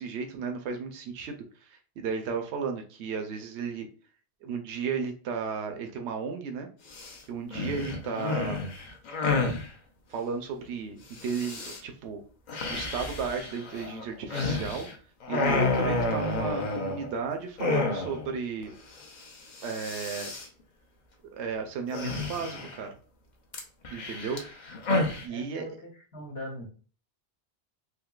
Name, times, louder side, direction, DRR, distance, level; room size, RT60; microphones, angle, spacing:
voice 1, 0.0-3.9 4.4-6.7 7.3-8.6 10.1-12.2 12.7-14.9 15.3-18.7 19.6-20.3 21.3-22.9 23.9-24.4 25.2-25.7, right 5 dB, 85° right, 5 dB, 0.9 m, -34 dB
sound 1, 6.9-7.2 7.5-9.7 11.2-11.8 12.5-14.9 15.2-17.2 17.6-18.3 18.6-18.7 19.0-19.3 19.5-20.5 21.9-22.8 23.5-25.2, left 3 dB, 50° left, 0.7 m, -30 dB
voice 2, 25.3-26.6, equal, 65° left, -4 dB, 1.2 m, -42 dB
3.6 x 2.8 x 2.3 m, 0.39 s
omnidirectional pair, 1.1 m